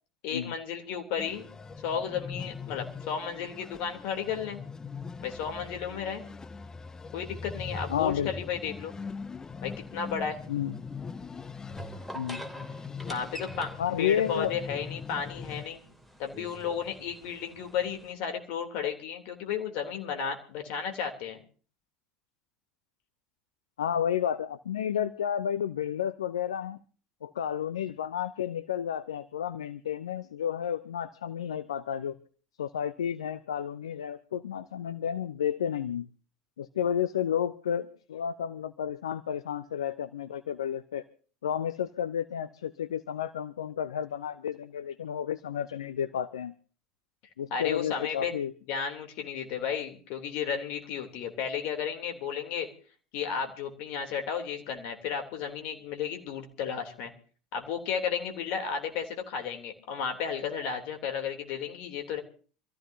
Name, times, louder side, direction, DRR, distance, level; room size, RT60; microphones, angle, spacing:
voice 1, 0.2-1.5 1.8-4.6 5.2-6.2 7.1-8.9 9.6-10.4 13.1-13.7 14.0-15.8 16.2-21.4 47.5-48.3 48.7-52.7 53.1-57.1 57.5-62.2, left 7 dB, 60° left, 5 dB, 3.2 m, -33 dB
sound 1, 1.2-15.7, left 5 dB, 20° left, 0.7 m, -41 dB
voice 2, 7.9-8.3 10.5-10.8 12.1-12.4 13.8-14.5 23.8-26.8 27.2-32.2 32.6-36.1 36.6-41.0 41.4-46.5 47.4-48.5, left 9 dB, 80° left, 14 dB, 0.6 m, -31 dB
sound 2, 9.6-18.1, equal, 5° left, 2.8 m, -46 dB
26.5 x 14.5 x 2.8 m, 0.41 s
hypercardioid pair, 75°, 3 cm